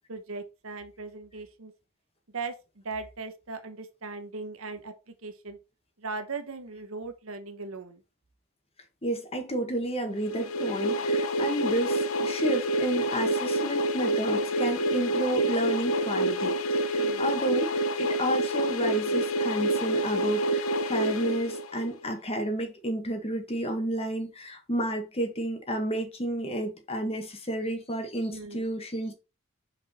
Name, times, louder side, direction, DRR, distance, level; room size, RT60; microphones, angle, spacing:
voice 1, 0.1-1.7 2.3-5.6 6.0-8.0 17.0-17.3 28.3-28.7, right 4 dB, 70° right, 1.1 m, -39 dB
voice 2, 9.0-16.6 16.9-29.1, right 1 dB, 30° left, 1.6 m, -31 dB
sound 1, 10.2-22.1, right 1 dB, 70° left, 0.8 m, -27 dB
6.0 x 5.0 x 4.2 m
head